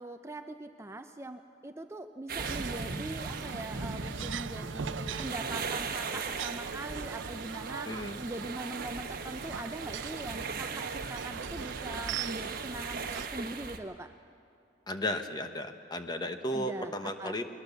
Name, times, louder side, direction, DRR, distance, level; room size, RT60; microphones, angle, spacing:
voice 1, 0.0-14.1 16.5-17.4, right 1 dB, 15° right, 7 dB, 0.5 m, -42 dB
sound 1, 2.3-13.8, right 4 dB, 50° right, 1.2 m, -39 dB
sound 2, 2.4-13.3, right 7 dB, 80° right, 0.5 m, -41 dB
voice 2, 7.9-8.2 14.9-17.5, left 1 dB, 20° left, 7 dB, 1.0 m, -34 dB
21.0 x 20.5 x 7.0 m, 2.5 s
head